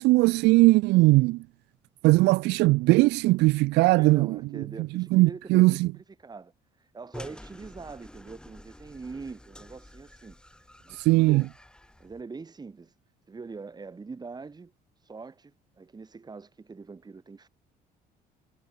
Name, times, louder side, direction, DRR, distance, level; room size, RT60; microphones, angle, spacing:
voice 1, 0.0-1.4 2.0-4.4 5.0-5.9 11.1-11.4, right 21 dB, 85° right, 0.6 m, -20 dB
voice 2, 3.9-6.5 6.8-10.4 10.8-11.5 12.0-12.9 13.3-14.7 15.0-17.5, right 4 dB, 25° right, 4.5 m, -43 dB
sound 1, 7.1-12.2, left 1 dB, 5° left, 7.5 m, -48 dB
cardioid pair, 110°, 17 cm